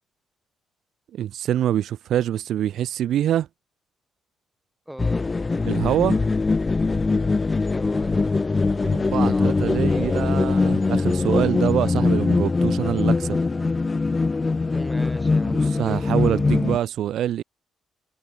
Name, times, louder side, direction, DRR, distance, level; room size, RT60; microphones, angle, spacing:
voice 1, 1.1-3.5 5.6-6.2 8.8-13.4 15.5-17.4, right 11 dB, 75° right, 0.4 m, -25 dB
voice 2, 4.9-5.3 7.6-8.5 9.2-10.3 14.7-15.7, right 1 dB, 5° right, 5.2 m, -38 dB
sound 1, 5.0-16.8, left 3 dB, 25° left, 0.5 m, -22 dB
cardioid pair, 90°, 0 cm